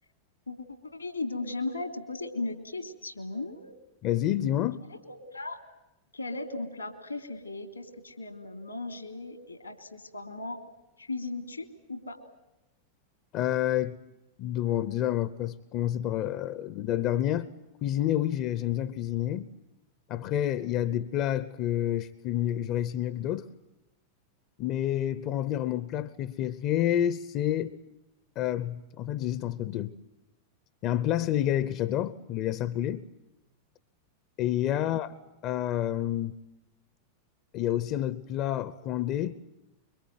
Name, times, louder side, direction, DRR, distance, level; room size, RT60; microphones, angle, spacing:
voice 1, 0.5-3.7 4.9-5.6 6.1-10.6 11.0-12.2, left 2 dB, 85° left, 3.1 m, -37 dB
voice 2, 4.0-4.8 13.3-14.0 14.4-17.5 17.8-19.5 20.1-23.5 24.6-27.7 28.4-29.9 30.8-33.0 34.4-35.1 35.4-36.4 37.5-39.4, left 12 dB, 40° left, 0.9 m, -29 dB
25.5 x 23.5 x 9.3 m
figure-of-eight pair, 90°, 0 cm